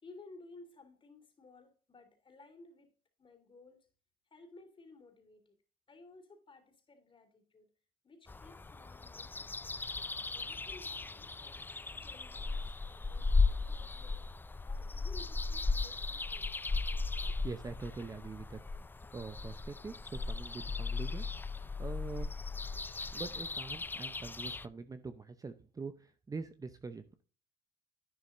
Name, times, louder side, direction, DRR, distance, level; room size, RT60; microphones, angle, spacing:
voice 1, 0.0-2.9 3.2-3.9 4.3-5.6 5.9-7.7 8.0-11.6 11.9-14.3 14.6-16.7, left 3 dB, 30° left, 3.1 m, -57 dB
sound 1, 8.3-24.7, left 3 dB, 10° left, 0.3 m, -36 dB
voice 2, 17.2-18.6 19.1-22.3 23.1-27.2, right 4 dB, 20° right, 0.8 m, -44 dB
11.0 x 9.5 x 2.6 m
cardioid pair, 110°, 17 cm